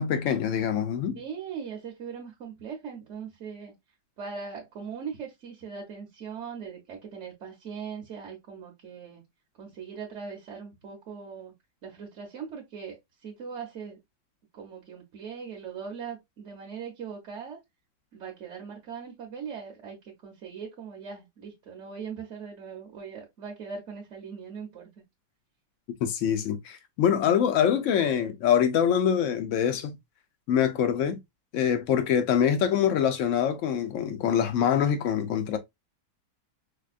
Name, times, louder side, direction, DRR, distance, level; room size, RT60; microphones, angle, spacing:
voice 1, 0.0-1.2 26.0-30.0 30.5-31.2 31.5-35.6, left 8 dB, 85° left, 0.6 m, -24 dB
voice 2, 1.1-3.7 4.2-9.2 9.6-11.5 11.8-14.0 14.5-17.6 18.1-24.9, right 6 dB, 50° right, 1.0 m, -40 dB
4.8 x 2.2 x 2.4 m
omnidirectional pair, 1.9 m